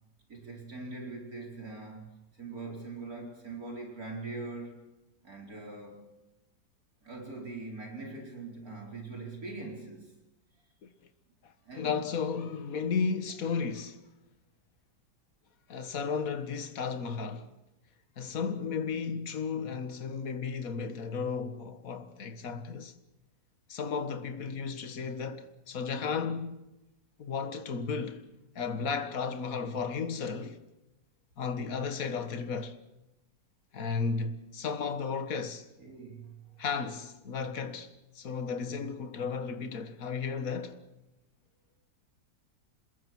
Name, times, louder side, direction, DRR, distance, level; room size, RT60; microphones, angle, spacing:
voice 1, 0.3-4.8 5.2-6.1 7.0-10.1 11.6-11.9 35.8-36.6, right 3 dB, 55° right, 5.0 m, -42 dB
voice 2, 11.7-14.0 15.7-17.5 18.2-23.0 23.7-26.6 27.2-28.2 28.6-30.6 31.4-32.8 33.7-35.7 36.6-40.8, left 5 dB, 55° left, 1.9 m, -34 dB
27.5 x 21.5 x 6.1 m
omnidirectional pair, 1.8 m